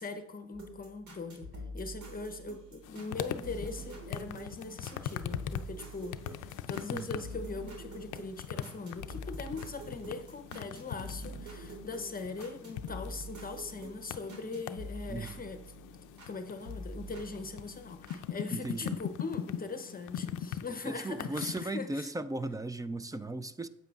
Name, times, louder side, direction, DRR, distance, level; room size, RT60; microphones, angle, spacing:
voice 1, 0.0-1.5 1.7-15.6 16.3-22.1, left 4 dB, 30° left, 0.8 m, -41 dB
sound 1, 0.5-16.4 16.7-18.2, right 1 dB, 70° right, 2.2 m, -46 dB
sound 2, 2.8-21.6, left 10 dB, 85° left, 0.5 m, -42 dB
voice 2, 18.5-19.0 20.8-23.7, right 2 dB, 10° right, 0.3 m, -37 dB
8.9 x 7.8 x 2.4 m
cardioid pair, 90°, 30 cm